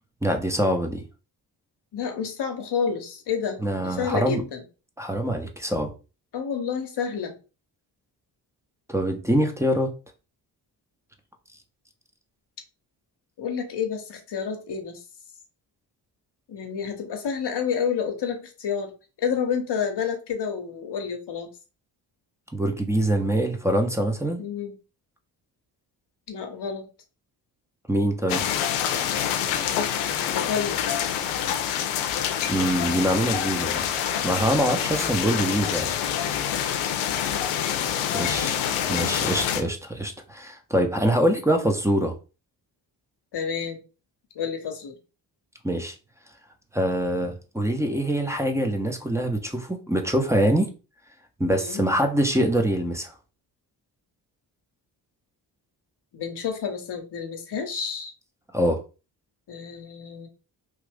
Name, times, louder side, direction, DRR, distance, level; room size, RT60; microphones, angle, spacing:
voice 1, 0.2-1.0 3.6-4.4 5.0-5.9 8.9-9.9 22.5-24.4 27.9-28.4 32.5-33.9 34.2-35.9 38.1-38.5 38.9-42.1 45.6-45.9 46.7-50.7 51.4-53.1 58.5-58.8, right 1 dB, 5° right, 5 dB, 0.9 m, -24 dB
voice 2, 1.9-4.6 6.3-7.3 13.4-15.0 16.5-18.9 19.2-21.5 24.4-24.8 26.3-26.9 30.3-30.8 34.8-35.3 38.1-38.8 43.3-43.8 44.3-45.0 51.5-51.8 56.1-58.1 59.5-60.3, left 7 dB, 55° left, 4 dB, 0.9 m, -30 dB
sound 1, 28.3-39.6, left 9 dB, 85° left, 0.6 m, -26 dB
3.1 x 2.5 x 3.5 m, 0.32 s
supercardioid pair, 45°, 49 cm